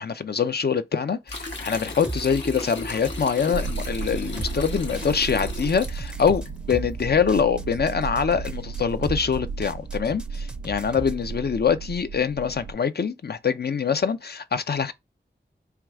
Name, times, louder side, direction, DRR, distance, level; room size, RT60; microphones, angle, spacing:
voice 1, 0.0-14.9, left 6 dB, 60° left, 0.5 m, -24 dB
sound 1, 1.3-6.5, left 2 dB, 80° left, 1.0 m, -36 dB
sound 2, 2.0-11.3, right 2 dB, 5° right, 0.5 m, -38 dB
sound 3, 3.5-12.7, right 5 dB, 80° right, 0.5 m, -34 dB
4.6 x 2.3 x 3.5 m
wide cardioid pair, 45°, 19 cm